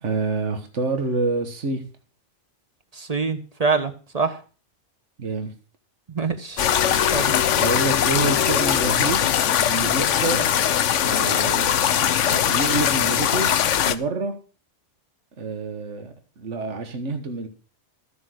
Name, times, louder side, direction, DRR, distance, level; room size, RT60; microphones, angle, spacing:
voice 1, 0.0-1.8 5.2-5.5 7.6-10.5 11.0-13.5 13.8-14.3 15.4-17.5, right 3 dB, 80° right, 7 dB, 1.8 m, -27 dB
voice 2, 2.9-4.4 6.1-6.6 7.1-7.4, right 4 dB, 30° right, 8 dB, 1.4 m, -25 dB
sound 1, 6.6-14.0, left 9 dB, 85° left, 1.1 m, -21 dB
13.5 x 6.0 x 7.8 m, 0.37 s
omnidirectional pair, 1.2 m